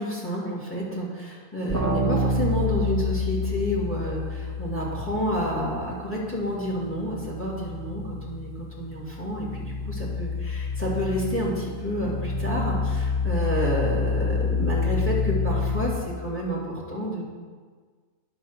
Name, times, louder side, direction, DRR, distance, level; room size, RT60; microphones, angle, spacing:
voice 1, 0.0-17.2, equal, 10° left, -4 dB, 2.2 m, -29 dB
sound 1, 1.7-6.1 6.4-15.9, left 3 dB, 10° right, 1.5 m, -28 dB
9.6 x 4.9 x 7.2 m, 1.5 s
omnidirectional pair, 1.3 m